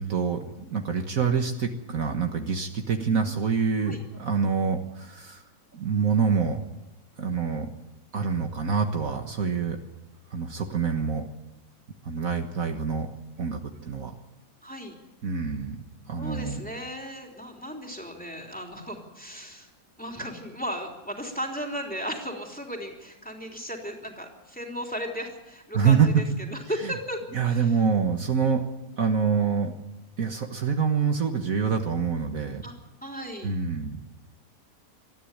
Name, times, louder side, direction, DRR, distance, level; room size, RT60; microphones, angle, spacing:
voice 1, 0.0-5.4 5.7-6.6 7.2-7.7 8.1-9.8 10.3-11.3 12.0-13.1 13.4-14.2 15.2-15.8 16.1-16.6 25.7-26.2 26.5-26.9 27.3-28.6 29.0-29.7 30.2-32.6 33.4-34.0, right 6 dB, 55° right, 5 dB, 1.7 m, -26 dB
voice 2, 14.6-15.0 16.2-19.7 20.0-26.2 26.5-27.7 32.6-32.7 33.0-33.5, equal, 5° left, 2 dB, 3.3 m, -35 dB
20.5 x 14.0 x 9.9 m, 1.1 s
omnidirectional pair, 1.7 m